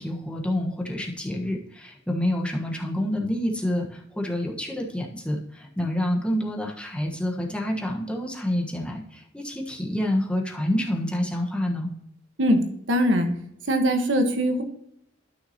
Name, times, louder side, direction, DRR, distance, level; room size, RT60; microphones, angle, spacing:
voice 1, 0.0-11.9, left 1 dB, 5° left, 0 dB, 1.2 m, -28 dB
voice 2, 12.9-13.3 13.7-14.6, equal, 80° right, 5 dB, 1.4 m, -21 dB
13.0 x 5.7 x 2.9 m, 0.74 s
head